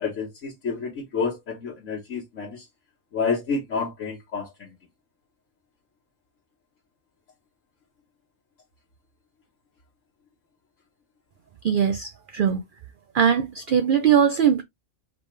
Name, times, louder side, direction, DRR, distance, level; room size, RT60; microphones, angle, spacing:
voice 1, 0.0-2.6 3.1-4.7, left 5 dB, 65° left, 1.7 m, -29 dB
voice 2, 11.6-12.6 13.1-14.6, right 8 dB, 65° right, 0.5 m, -20 dB
4.9 x 3.2 x 3.2 m
omnidirectional pair, 1.4 m